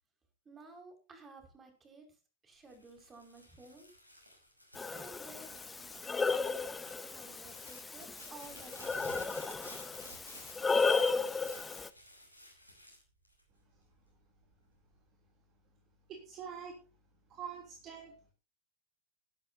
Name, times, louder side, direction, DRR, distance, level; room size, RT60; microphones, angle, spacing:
voice 1, 0.5-2.1 2.4-3.9 4.9-5.5 5.8-6.7 7.1-9.1, right 2 dB, 20° right, 5 dB, 5.6 m, -54 dB
sound 1, 2.6-13.9 14.4-15.0, equal, 90° right, 6.5 m, -55 dB
Breathing, 4.7-11.9, left 4 dB, 15° left, 0.8 m, -34 dB
voice 2, 16.1-16.8 17.3-18.3, right 7 dB, 35° right, 3 dB, 3.2 m, -45 dB
20.0 x 12.0 x 2.8 m, 0.35 s
figure-of-eight pair, 90°, 0 cm